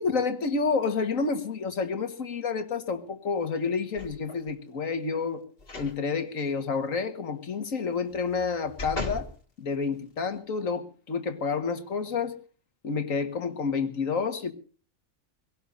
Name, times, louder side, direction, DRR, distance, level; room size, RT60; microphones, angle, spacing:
voice 1, 0.0-5.4 5.8-9.3 9.6-12.3 12.8-14.5, left 5 dB, 75° left, 2.0 m, -29 dB
sound 1, 4.0-4.5 5.6-6.0 6.4-6.5 8.1-9.3 9.9-10.0, left 2 dB, 45° left, 2.3 m, -37 dB
23.0 x 17.5 x 2.7 m
omnidirectional pair, 1.4 m